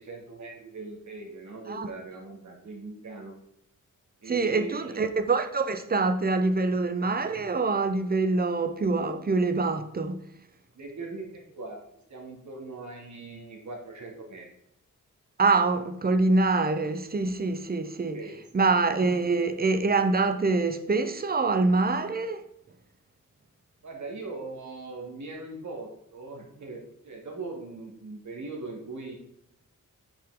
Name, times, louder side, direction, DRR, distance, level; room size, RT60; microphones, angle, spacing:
voice 1, 0.0-3.3 4.2-5.1 10.7-11.8 12.1-14.5 18.1-18.3 23.8-29.1, right 3 dB, 60° right, 2.5 m, -40 dB
voice 2, 4.3-10.2 15.4-18.2 18.5-22.4, right 3 dB, 30° right, 0.7 m, -25 dB
8.5 x 5.9 x 3.8 m
wide cardioid pair, 130°, 32 cm